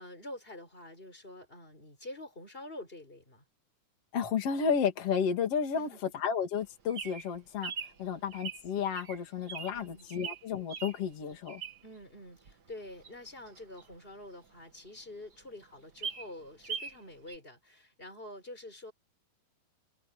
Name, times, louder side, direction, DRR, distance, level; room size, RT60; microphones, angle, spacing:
voice 1, 0.0-3.4 5.7-6.0 8.1-8.3 9.7-10.1 11.8-18.9, left 1 dB, 15° left, 6.0 m, -47 dB
voice 2, 4.1-5.9 6.1-7.7 8.0-11.6, left 7 dB, 45° left, 3.5 m, -32 dB
Bird vocalization bird call bird song, 6.6-12.0 12.5-14.6 15.0-15.1 15.3-15.4 15.8-17.0 17.3-17.4, right 6 dB, 45° right, 1.4 m, -42 dB
omnidirectional pair, 4.0 m